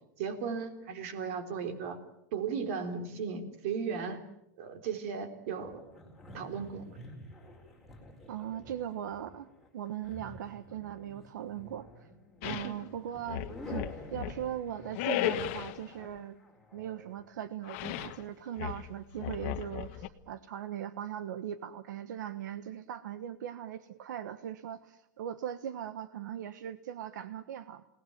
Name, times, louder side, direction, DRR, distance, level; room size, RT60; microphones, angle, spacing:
voice 1, 0.2-2.0 2.3-4.3 4.6-5.8 6.3-7.0 12.5-12.7, right 6 dB, 45° right, 9 dB, 3.5 m, -36 dB
sound 1, 5.6-18.3, left 1 dB, ahead, 4.2 m, -51 dB
voice 2, 8.3-12.1 12.4-16.4 16.7-27.9, right 10 dB, 80° right, 13 dB, 1.3 m, -39 dB
sound 2, 12.4-12.8 13.3-14.5 14.9-15.8 17.7-18.2 18.6-20.1, left 12 dB, 40° left, 1.4 m, -35 dB
28.0 x 19.0 x 9.0 m, 0.82 s
supercardioid pair, 175°, 10 cm